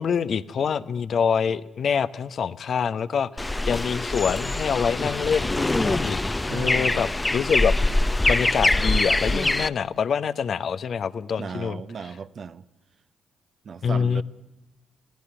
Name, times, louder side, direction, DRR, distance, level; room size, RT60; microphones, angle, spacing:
voice 1, 0.0-6.2 6.5-7.8 8.3-11.8 13.8-14.2, left 7 dB, 55° left, 0.9 m, -25 dB
sound 1, 3.4-9.7, left 2 dB, 20° left, 0.9 m, -24 dB
voice 2, 6.5-7.1 11.4-12.6 13.6-14.2, right 6 dB, 55° right, 1.1 m, -36 dB
22.0 x 17.0 x 9.8 m
hypercardioid pair, 45°, 0 cm